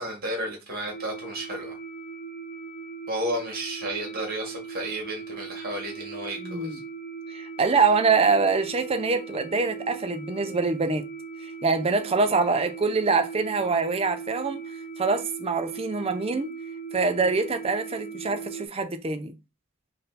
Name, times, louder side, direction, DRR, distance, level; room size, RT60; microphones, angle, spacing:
voice 1, 0.0-1.8 3.1-6.8, right 1 dB, 40° right, 1.6 m, -32 dB
sound 1, 0.9-18.7, right 5 dB, 35° left, 0.5 m, -39 dB
voice 2, 6.4-6.8 7.3-11.1 11.4-14.6 15.0-16.5 16.9-19.3, right 4 dB, 25° right, 0.4 m, -24 dB
3.8 x 2.7 x 3.9 m
head